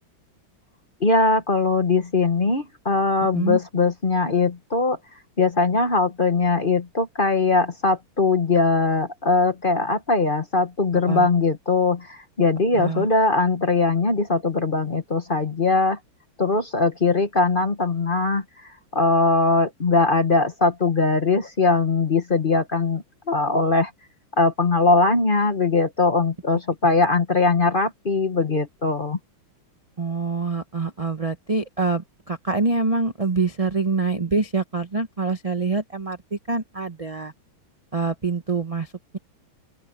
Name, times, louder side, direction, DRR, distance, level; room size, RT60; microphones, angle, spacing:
voice 1, 1.0-5.0 5.4-16.0 16.4-18.4 18.9-23.9 24.4-29.2, left 3 dB, 30° left, 1.1 m, -21 dB
voice 2, 12.7-13.1 30.0-37.3 37.9-39.2, right 3 dB, 35° right, 0.5 m, -25 dB
open air
omnidirectional pair, 2.3 m